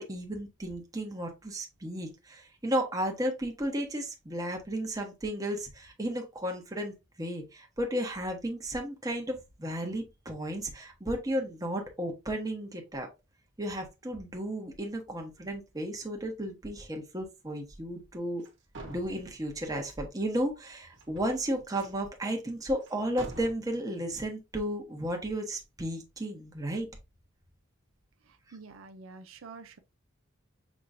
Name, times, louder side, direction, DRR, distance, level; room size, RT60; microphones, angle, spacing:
voice 1, 0.0-13.1 13.6-18.4 18.9-26.9, right 1 dB, 20° right, 1.1 m, -34 dB
sound 1, 18.4-18.5 18.7-19.9 20.9-22.0 22.8-22.9 23.2-23.5, right 2 dB, 60° right, 1.2 m, -45 dB
voice 2, 28.2-29.8, right 4 dB, 75° right, 0.6 m, -48 dB
6.2 x 3.0 x 2.6 m
head